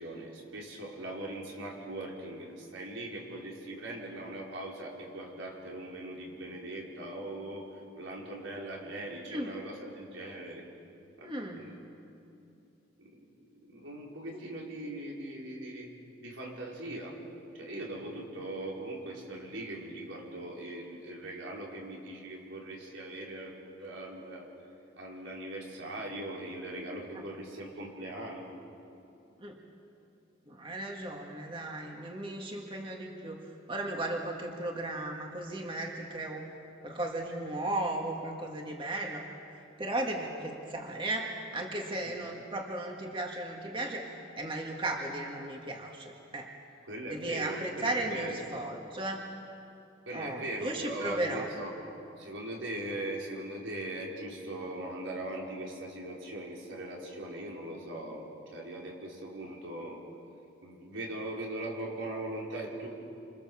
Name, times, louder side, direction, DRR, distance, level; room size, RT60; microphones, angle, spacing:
voice 1, 0.0-7.7 8.0-10.6 11.2-11.8 13.0-15.9 16.2-17.2 17.5-24.5 25.0-28.5 42.0-42.1 46.9-48.4 50.1-51.8 52.2-60.0 60.6-62.9, right 1 dB, 90° right, -3 dB, 5.5 m, -40 dB
voice 2, 11.2-11.7 27.1-27.2 29.4-29.6 30.5-36.5 36.8-39.3 39.8-44.1 44.4-46.5 47.1-49.3 50.1-51.5, right 1 dB, 25° right, 1 dB, 2.0 m, -35 dB
28.0 x 27.0 x 7.3 m, 2.7 s
head